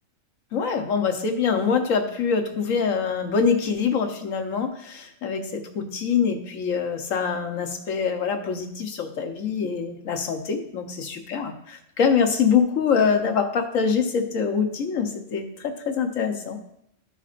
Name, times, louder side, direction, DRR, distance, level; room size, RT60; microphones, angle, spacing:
voice 1, 0.5-16.6, left 6 dB, 80° left, 5 dB, 1.3 m, -24 dB
13.5 x 5.7 x 2.5 m, 0.75 s
omnidirectional pair, 1.3 m